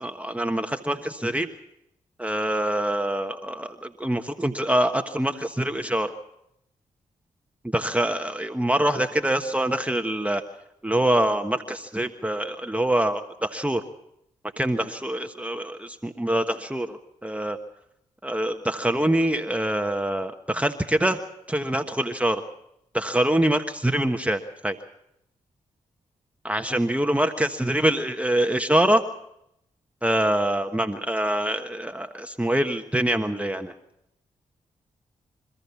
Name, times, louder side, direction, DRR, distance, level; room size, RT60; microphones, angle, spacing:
voice 1, 0.0-1.5 2.2-6.1 7.7-10.4 10.8-13.8 14.6-17.6 18.2-21.2 21.5-22.4 22.9-24.8 26.4-29.0 30.0-33.7, right 1 dB, 10° right, 5 dB, 1.3 m, -25 dB
26.5 x 14.0 x 7.1 m, 0.79 s
supercardioid pair, 40°, 15 cm